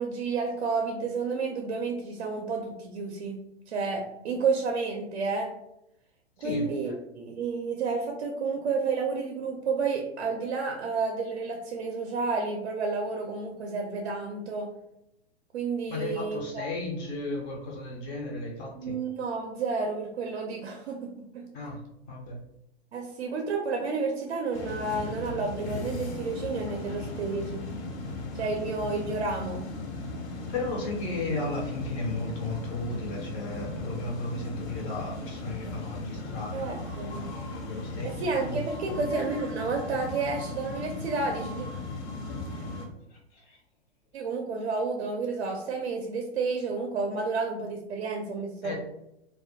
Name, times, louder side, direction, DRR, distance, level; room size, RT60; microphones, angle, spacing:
voice 1, 0.0-3.4 3.7-5.5 6.4-14.7 15.5-16.6 18.8-21.4 22.9-27.6 28.3-29.6 36.5-37.3 38.2-41.7 44.1-48.7, right 4 dB, 65° right, 2 dB, 0.5 m, -31 dB
voice 2, 6.4-6.9 15.9-18.9 21.5-21.8 22.1-22.4 30.4-39.0 43.1-43.6 48.6-48.7, left 2 dB, 20° left, 0 dB, 0.4 m, -35 dB
sound 1, 24.5-42.9, left 2 dB, 80° left, 0.7 m, -37 dB
2.2 x 2.1 x 2.6 m, 0.84 s
figure-of-eight pair, 110°, 33 cm